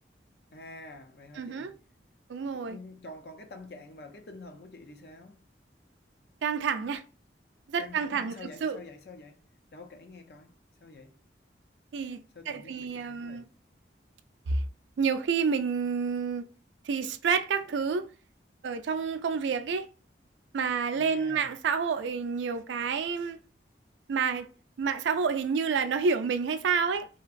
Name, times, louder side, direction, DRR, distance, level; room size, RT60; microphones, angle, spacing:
voice 1, 0.5-1.8 2.5-5.4 7.8-10.5 10.8-11.2 12.3-13.5 20.9-21.5, left 2 dB, 60° left, 0.6 m, -47 dB
voice 2, 1.4-1.7 2.3-2.8 6.4-7.0 7.7-8.4 8.6-8.8 11.9-12.2 12.5-13.4 14.5-14.6 15.0-16.5 16.8-18.1 18.6-19.9 20.5-23.4 24.1-24.5 24.8-27.1, right 5 dB, 85° right, 0.4 m, -29 dB
2.9 x 2.5 x 2.4 m
head